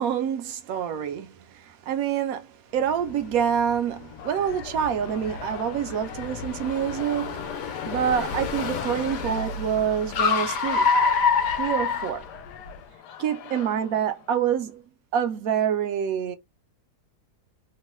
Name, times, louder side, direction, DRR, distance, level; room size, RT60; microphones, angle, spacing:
voice 1, 0.0-2.5 2.7-7.4 7.9-10.9 11.6-12.2 13.2-14.8 15.1-16.4, right 8 dB, 70° right, 1.0 m, -26 dB
Car, 2.9-12.8, left 5 dB, 65° left, 1.0 m, -28 dB
sound 1, 4.2-14.6, left 9 dB, 85° left, 1.2 m, -43 dB
3.1 x 2.1 x 3.0 m
omnidirectional pair, 1.8 m